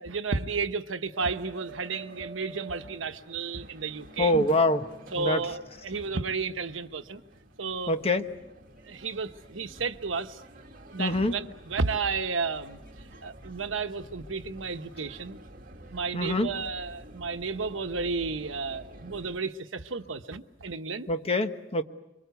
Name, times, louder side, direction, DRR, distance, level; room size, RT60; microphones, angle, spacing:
voice 1, 0.0-4.6 5.1-7.2 7.6-7.9 8.8-10.4 10.9-15.4 15.9-21.1, right 4 dB, 75° right, 9 dB, 1.1 m, -32 dB
sound 1, 1.1-19.4, right 1 dB, 45° right, 2.0 m, -49 dB
voice 2, 4.2-4.8 5.1-5.4 7.9-8.2 11.0-11.3 16.1-16.5 21.1-21.8, left 1 dB, 30° left, 8 dB, 1.2 m, -25 dB
25.0 x 24.0 x 8.1 m, 0.96 s
head